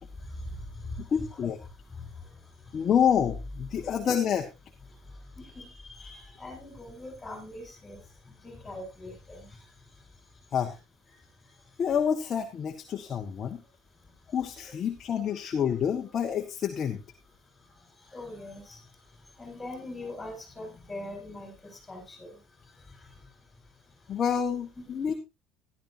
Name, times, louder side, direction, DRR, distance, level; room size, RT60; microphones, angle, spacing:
voice 1, 0.2-2.9 3.7-3.9 4.9-10.6 11.1-11.8 13.6-14.4 17.4-24.2 24.8-24.9, left 2 dB, 10° left, 3 dB, 7.5 m, -44 dB
voice 2, 1.1-1.6 2.7-4.5 10.5-10.7 11.8-13.6 14.3-17.0 24.1-25.1, left 8 dB, 30° left, 3 dB, 1.4 m, -28 dB
15.0 x 12.0 x 2.7 m, 0.27 s
cardioid pair, 145°, 0 cm